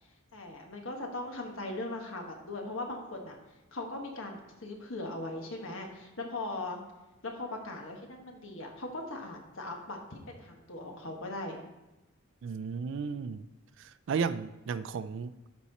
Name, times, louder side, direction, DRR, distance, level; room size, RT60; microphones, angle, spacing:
voice 1, 0.3-3.4 3.7-6.8 7.2-11.6, left 2 dB, 65° left, 1.4 m, -39 dB
voice 2, 12.4-13.4 14.1-15.3, right 5 dB, 60° right, 0.3 m, -33 dB
12.0 x 4.3 x 4.1 m
head